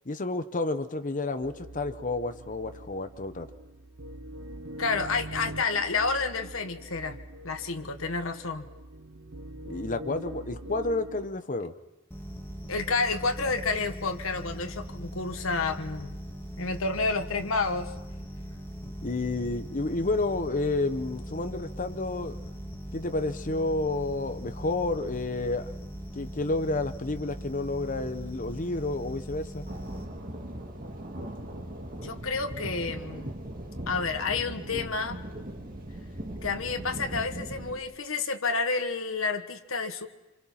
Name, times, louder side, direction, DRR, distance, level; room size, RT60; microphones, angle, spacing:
voice 1, 0.1-3.5 9.6-11.7 18.8-22.4 22.9-25.7 26.1-29.7, left 2 dB, 40° left, 9 dB, 0.9 m, -30 dB
sound 1, 1.4-11.3, right 1 dB, 75° right, 0.9 m, -43 dB
voice 2, 4.8-7.2 7.4-8.7 12.7-16.2 16.6-17.9 32.0-33.3 33.9-35.2 36.4-40.1, left 4 dB, 75° left, 6 dB, 1.4 m, -30 dB
sound 2, 12.1-30.0, equal, 10° left, 2.7 m, -40 dB
sound 3, 29.7-37.8, right 1 dB, 40° right, 2.2 m, -39 dB
26.0 x 26.0 x 5.8 m, 1.0 s
head